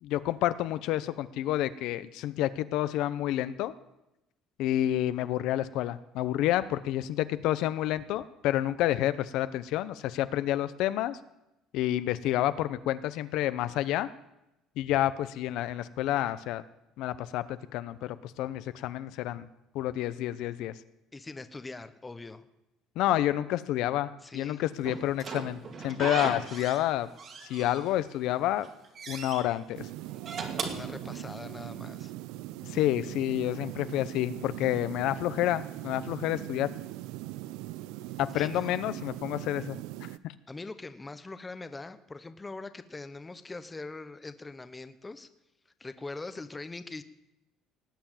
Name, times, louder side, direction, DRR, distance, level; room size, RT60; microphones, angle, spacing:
voice 1, 0.0-3.7 4.6-11.2 11.7-14.1 14.8-16.6 17.0-19.5 19.7-20.7 23.0-27.1 27.5-28.7 29.1-29.9 32.6-36.7 38.2-39.8, left 13 dB, 70° left, 13 dB, 0.7 m, -29 dB
voice 2, 21.1-22.5 24.2-24.6 30.7-32.1 38.3-38.8 40.5-45.3 45.8-47.0, left 3 dB, 15° left, 11 dB, 0.8 m, -42 dB
Slam / Squeak, 24.8-26.9 27.2-28.2 28.5-29.4 30.1-31.6, right 5 dB, 40° right, 2.2 m, -38 dB
sound 1, 29.7-40.2, right 16 dB, 85° right, 0.5 m, -41 dB
18.5 x 7.0 x 9.0 m, 0.91 s
cardioid pair, 145°, 0 cm